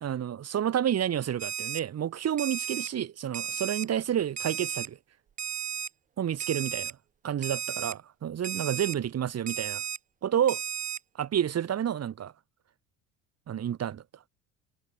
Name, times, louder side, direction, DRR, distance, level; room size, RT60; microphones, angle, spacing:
voice 1, 0.0-5.0 6.2-7.0 7.2-9.8 10.2-10.6 11.2-12.3 13.5-14.0, right 10 dB, 45° right, 1.9 m, -29 dB
Alarm, 1.4-1.8 2.4-2.9 3.3-3.8 4.4-4.9 5.4-5.9 6.4-6.9 7.4-7.9 8.4-8.9 9.5-10.0 10.5-11.0, right 9 dB, 25° right, 0.4 m, -34 dB
supercardioid pair, 75°, 36 cm